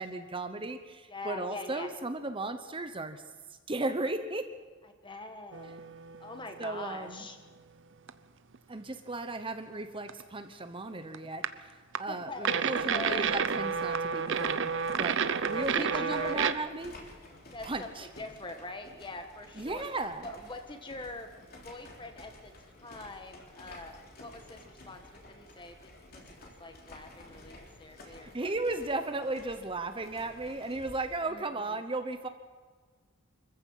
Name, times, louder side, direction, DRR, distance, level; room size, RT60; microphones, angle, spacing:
voice 1, 0.0-3.2 3.7-4.5 6.6-7.3 8.7-11.7 12.0-14.7 15.0-17.0 17.6-18.1 19.6-20.3 28.2-32.3, right 2 dB, 25° right, 8 dB, 0.9 m, -35 dB
voice 2, 1.1-1.9 4.8-5.8 6.2-7.4 12.1-13.4 15.5-16.6 17.5-19.8 20.2-21.4 21.6-28.5 31.3-31.8, left 2 dB, 25° left, 6 dB, 1.6 m, -43 dB
sound 1, 5.5-6.8 7.2-7.3 8.1-8.2 8.5-8.6 10.1-10.2 11.1-11.5 11.9-12.0 12.4-16.5, right 6 dB, 60° right, 0.8 m, -30 dB
sound 2, 12.3-31.2, left 1 dB, 45° left, 3.6 m, -53 dB
25.5 x 14.5 x 7.4 m, 1.5 s
head